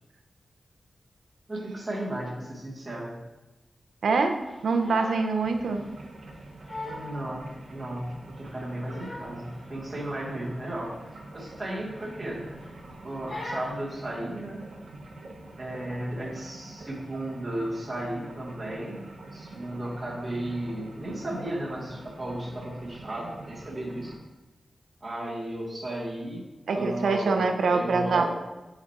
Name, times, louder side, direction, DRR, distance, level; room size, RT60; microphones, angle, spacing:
voice 1, 1.5-3.2 6.8-10.9 11.3-12.4 13.0-14.6 15.6-19.0 19.3-24.1 25.0-26.4 26.7-28.3, right 1 dB, 20° right, -6 dB, 1.5 m, -34 dB
voice 2, 4.0-4.4 4.6-5.8 26.7-28.3, right 4 dB, 90° right, 6 dB, 0.6 m, -24 dB
Crying sobbing, 4.4-5.3 5.6-5.9 6.3-6.4 6.7-7.1 7.6-7.7 8.5-9.4 9.6-9.9 10.2-10.4 10.7-10.9 11.7-12.3 12.6-12.9 13.3-13.8, left 1 dB, 30° left, 2.3 m, -39 dB
sound 1, 5.4-24.2, right 2 dB, 60° right, 0.9 m, -45 dB
6.4 x 4.2 x 4.6 m, 1.1 s
wide cardioid pair, 140°, 0 cm